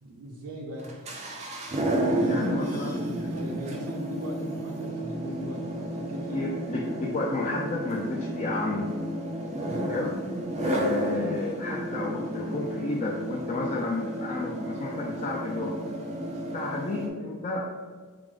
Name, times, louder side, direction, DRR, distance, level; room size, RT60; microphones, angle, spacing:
voice 1, 0.0-0.9 2.0-6.5 9.7-10.0, equal, 75° right, -2 dB, 0.7 m, -39 dB
sound 1, 0.8-17.1, right 1 dB, 30° right, 0.4 m, -31 dB
voice 2, 2.3-3.3 6.2-9.0 9.9-10.2 10.6-15.8 16.5-17.6, left 2 dB, 30° left, -2 dB, 0.3 m, -32 dB
4.7 x 2.0 x 3.7 m, 1.4 s
head